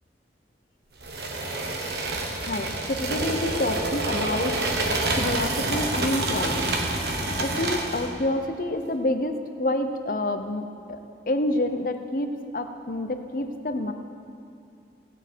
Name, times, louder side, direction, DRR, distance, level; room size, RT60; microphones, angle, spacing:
sound 1, 1.0-8.1, right 2 dB, 70° right, 1.3 m, -27 dB
voice 1, 2.4-4.6 5.2-6.7 7.4-11.0 11.3-13.9, left 1 dB, 50° left, 7 dB, 0.7 m, -28 dB
16.5 x 8.8 x 4.6 m, 2.4 s
head